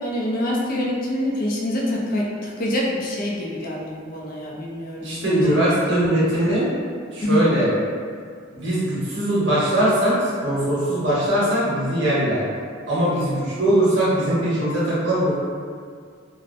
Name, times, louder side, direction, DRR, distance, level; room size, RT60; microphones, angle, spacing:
voice 1, 0.0-5.3 7.2-7.5, left 1 dB, 45° left, -3 dB, 0.3 m, -25 dB
voice 2, 5.0-6.7 7.1-7.7 8.5-10.2 10.4-12.4 12.9-15.3, right 1 dB, 65° right, -8 dB, 0.8 m, -21 dB
2.6 x 2.0 x 2.5 m, 2.1 s
head